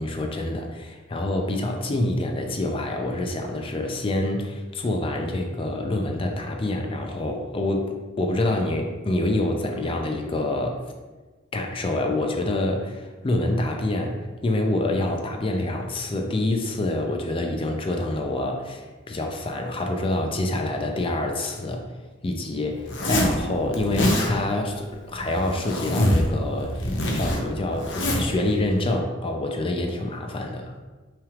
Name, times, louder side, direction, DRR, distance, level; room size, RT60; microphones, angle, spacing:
voice 1, 0.0-10.8 11.5-21.9 22.2-30.7, left 1 dB, 30° left, 3 dB, 0.4 m, -26 dB
Zipper (clothing), 22.9-23.4 23.7-24.3 25.2-26.3 26.6-28.3, left 1 dB, 75° left, 0.7 m, -24 dB
5.6 x 3.4 x 2.4 m, 1.3 s
head